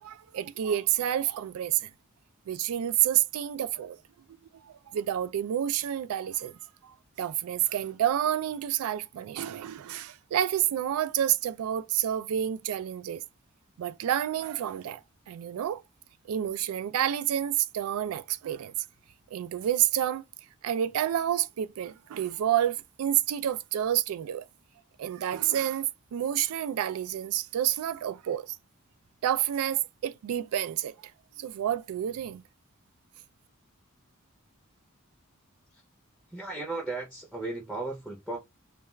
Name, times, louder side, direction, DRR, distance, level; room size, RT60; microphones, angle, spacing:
voice 1, 0.0-1.9 2.5-4.0 4.6-6.5 7.2-13.2 13.8-15.0 15.3-15.8 16.3-18.7 19.3-20.2 20.6-24.4 25.0-28.6 29.2-30.9 31.4-32.4, right 11 dB, 85° right, 0.3 m, -29 dB
voice 2, 36.3-38.4, right 2 dB, ahead, 0.5 m, -35 dB
2.3 x 2.2 x 3.0 m
head